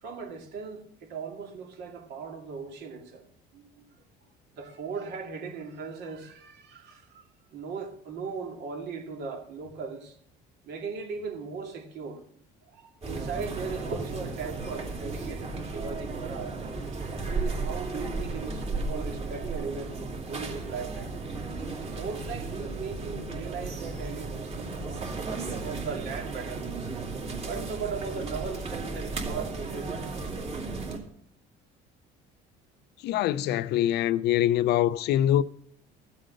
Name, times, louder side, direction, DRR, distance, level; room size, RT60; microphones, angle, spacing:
voice 1, 0.0-3.3 3.5-4.0 4.5-10.1 10.6-12.2 12.7-16.6 17.2-21.1 22.0-26.7 27.3-30.2, right 5 dB, 65° right, 2.4 m, -38 dB
sound 1, 13.0-31.0, right 3 dB, 35° right, 2.6 m, -35 dB
voice 2, 33.0-35.4, left 12 dB, 65° left, 0.5 m, -24 dB
14.0 x 7.7 x 5.2 m
cardioid pair, 135°, 18 cm